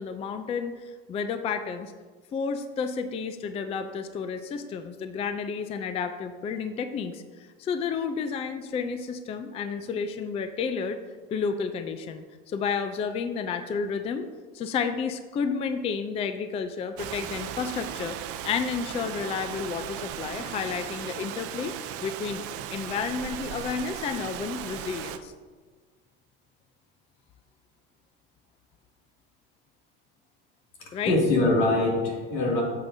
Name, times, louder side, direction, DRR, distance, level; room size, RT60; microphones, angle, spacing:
voice 1, 0.0-1.9 2.3-11.0 11.3-14.3 14.5-21.7 22.0-22.4 22.7-25.3 30.9-31.1, left 6 dB, 20° left, 9 dB, 0.3 m, -31 dB
Rain, 17.0-25.2, right 10 dB, 50° right, 0.5 m, -37 dB
voice 2, 30.8-32.6, left 2 dB, 80° left, -2 dB, 2.4 m, -23 dB
8.6 x 7.3 x 2.7 m, 1.4 s
supercardioid pair, 120°, 31 cm